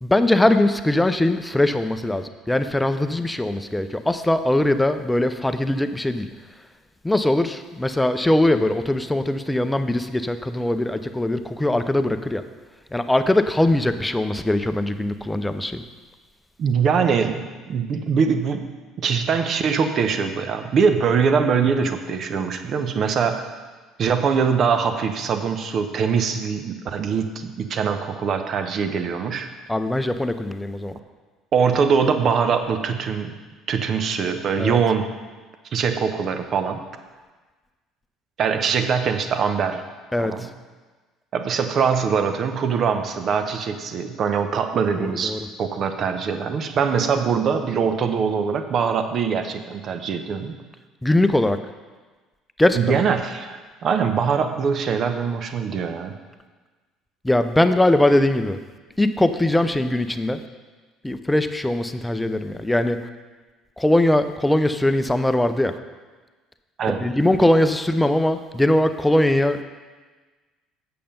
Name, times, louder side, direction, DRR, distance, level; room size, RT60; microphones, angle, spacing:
voice 1, 0.0-6.3 7.0-12.4 12.9-15.8 29.7-31.0 34.6-34.8 40.1-40.4 45.0-45.5 51.0-51.6 52.6-53.0 57.2-58.6 59.0-60.4 61.0-63.0 63.8-65.8 66.9-69.6, left 1 dB, 10° left, 9 dB, 0.6 m, -21 dB
voice 2, 16.6-18.6 19.0-23.6 24.0-29.5 31.5-33.4 33.7-35.1 35.7-36.8 38.4-39.8 40.2-40.5 41.3-50.6 52.7-56.2 66.8-67.0, right 6 dB, 50° right, 8 dB, 0.8 m, -22 dB
8.6 x 6.8 x 5.3 m, 1.3 s
figure-of-eight pair, 55°, 0 cm